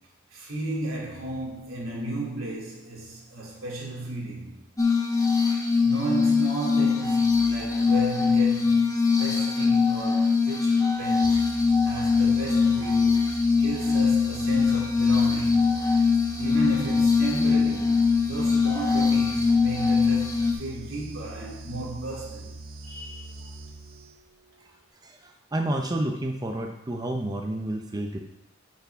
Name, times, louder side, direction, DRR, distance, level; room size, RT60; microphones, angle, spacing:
voice 1, 0.3-4.5 5.8-8.8 9.2-11.5 11.8-15.7 16.1-22.5 22.8-23.5, right 2 dB, 85° right, 2.9 m, -34 dB
Glass, 4.8-20.5, left 5 dB, 15° left, 1.0 m, -22 dB
sound 1, 11.2-24.4, right 2 dB, 50° right, 1.2 m, -42 dB
voice 2, 25.0-28.2, right 1 dB, 20° right, 0.6 m, -30 dB
11.0 x 5.9 x 3.6 m
head